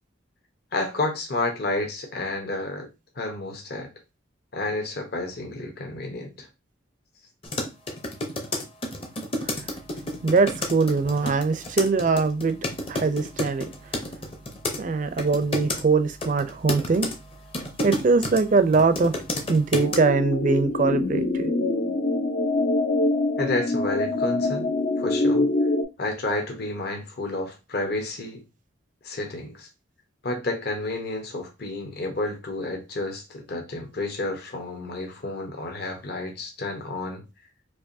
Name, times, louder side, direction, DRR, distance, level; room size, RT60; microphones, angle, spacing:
voice 1, 0.7-2.9 3.2-3.9 4.5-6.5 23.4-25.5 26.0-28.4 29.0-29.7 30.2-37.2, left 2 dB, 55° left, 1.0 m, -30 dB
sound 1, 7.4-14.8 15.2-15.8 16.2-18.4 18.7-20.0, left 1 dB, 30° left, 0.7 m, -30 dB
voice 2, 10.2-12.6 12.9-13.6 14.8-17.1 17.8-19.1 19.5-21.5, right 4 dB, 40° right, 0.4 m, -22 dB
sound 2, 19.7-25.8, left 2 dB, 80° left, 1.0 m, -24 dB
4.6 x 2.6 x 2.6 m
head